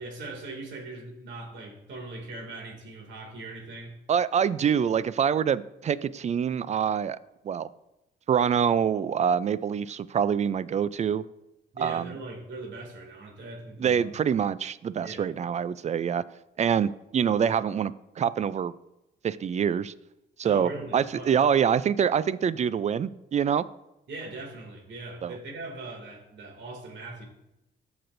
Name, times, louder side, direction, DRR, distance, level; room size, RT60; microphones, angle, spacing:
voice 1, 0.0-4.0 11.7-14.1 15.0-15.3 20.4-21.5 24.1-27.2, right 2 dB, 65° right, 0 dB, 2.5 m, -40 dB
voice 2, 4.1-7.2 7.4-7.7 8.3-11.2 11.8-12.1 13.8-16.2 16.6-18.7 19.2-19.9 20.4-23.7 25.2-25.4, right 8 dB, 35° right, 17 dB, 0.4 m, -25 dB
14.0 x 6.0 x 2.6 m, 0.90 s
cardioid pair, 90°, 20 cm